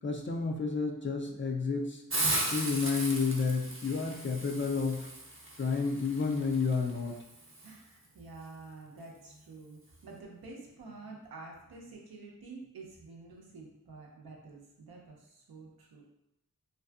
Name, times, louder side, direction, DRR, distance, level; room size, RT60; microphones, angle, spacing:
voice 1, 0.0-2.0 2.5-5.1 5.6-7.1, left 4 dB, 35° left, 1 dB, 0.4 m, -31 dB
Hiss, 2.1-7.7, right 1 dB, 35° right, 0.6 m, -36 dB
voice 2, 7.6-16.0, right 3 dB, 85° right, -1 dB, 0.6 m, -49 dB
2.6 x 2.5 x 2.3 m, 0.87 s
wide cardioid pair, 55°, 36 cm